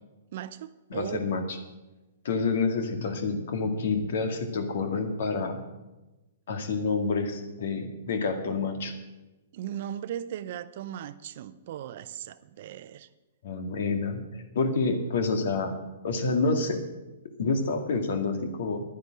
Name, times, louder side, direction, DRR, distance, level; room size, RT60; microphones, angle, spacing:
voice 1, 0.3-1.2 9.5-13.1, right 10 dB, 55° right, 14 dB, 0.7 m, -37 dB
voice 2, 0.9-1.6 2.2-5.6 6.5-8.9 13.4-15.7 16.0-16.8 17.4-18.8, left 4 dB, 70° left, 7 dB, 2.0 m, -28 dB
11.0 x 9.7 x 7.5 m, 1.1 s
hypercardioid pair, 130°, 0 cm